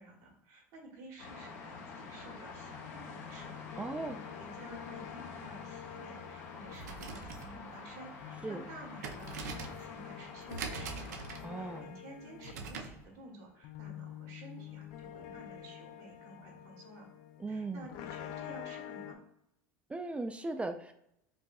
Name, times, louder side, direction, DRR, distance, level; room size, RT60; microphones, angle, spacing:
voice 1, 0.0-11.3 11.5-17.1 17.5-19.2, right 2 dB, 75° right, -1 dB, 1.3 m, -52 dB
sound 1, 1.2-11.8, left 4 dB, 75° left, 0.9 m, -48 dB
sound 2, 2.7-7.9 8.2-19.1, left 11 dB, 60° left, 0.4 m, -48 dB
voice 2, 3.8-4.2 8.4-8.6 11.4-12.0 17.4-17.9 19.9-20.9, right 2 dB, 15° right, 7 dB, 0.3 m, -38 dB
sound 3, 6.7-13.0, right 5 dB, 90° right, 0.5 m, -44 dB
4.7 x 2.6 x 2.4 m, 0.78 s
hypercardioid pair, 90°, 9 cm